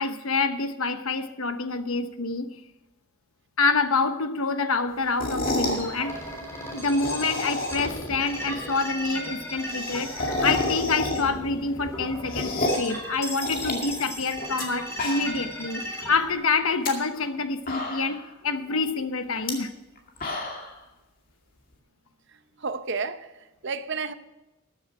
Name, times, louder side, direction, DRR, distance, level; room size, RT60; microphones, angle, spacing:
voice 1, 0.0-2.5 3.6-6.2 6.7-18.2 18.4-19.7, left 4 dB, 80° left, 1.0 m, -27 dB
sound 1, 5.1-5.9 6.8-8.0 8.3-8.4 8.6-8.7 8.9-9.0 9.3-11.5 11.8-12.9 13.4-14.6 14.9-15.5 15.8-15.9 16.6-16.9 17.4-17.5 17.7-18.3 19.3-19.5 20.0-20.7, left 2 dB, 45° left, 2.3 m, -30 dB
sound 2, 5.6-16.3, equal, 15° left, 3.3 m, -36 dB
voice 2, 22.3-24.1, right 4 dB, 55° right, 0.8 m, -33 dB
13.5 x 9.7 x 4.8 m
head